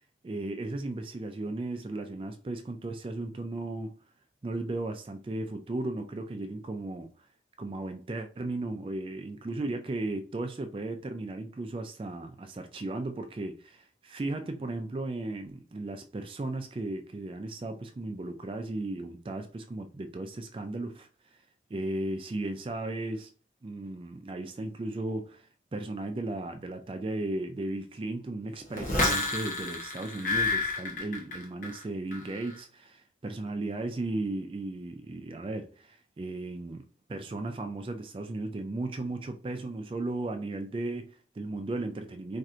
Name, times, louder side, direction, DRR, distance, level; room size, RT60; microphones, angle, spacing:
voice 1, 0.2-4.0 4.4-7.1 7.6-21.1 21.7-23.3 23.6-36.8 37.1-42.4, right 2 dB, 30° right, 0.3 m, -35 dB
sound 1, 28.7-31.8 32.1-32.5, left 2 dB, 45° left, 0.8 m, -30 dB
4.3 x 2.5 x 2.5 m
head